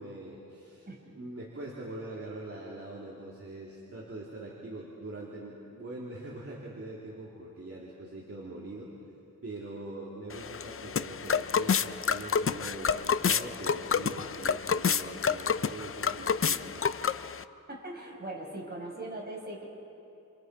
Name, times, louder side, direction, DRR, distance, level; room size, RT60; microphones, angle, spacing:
voice 1, 0.0-8.9 9.4-16.8, right 2 dB, 45° right, -5 dB, 2.9 m, -43 dB
sound 1, 10.3-17.4, left 6 dB, 45° left, 0.5 m, -29 dB
voice 2, 17.7-19.6, right 2 dB, 30° right, -2 dB, 5.4 m, -40 dB
28.0 x 27.5 x 4.7 m, 2.8 s
wide cardioid pair, 120°, 32 cm